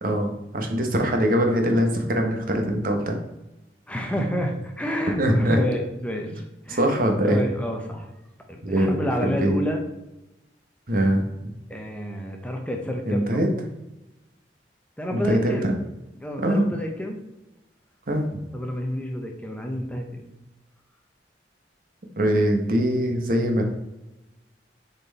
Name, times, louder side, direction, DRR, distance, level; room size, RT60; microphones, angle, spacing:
voice 1, 0.0-3.2 5.2-5.6 6.7-7.4 8.6-9.6 10.9-11.2 13.1-13.5 15.1-15.6 16.4-16.6 18.1-18.3 22.2-23.6, equal, 55° right, 3 dB, 1.1 m, -22 dB
voice 2, 3.9-6.9 7.2-8.1 8.5-9.8 11.7-13.4 15.0-15.7 16.2-17.2 18.5-20.3, equal, 5° left, 2 dB, 0.8 m, -29 dB
6.9 x 4.4 x 4.1 m, 0.94 s
head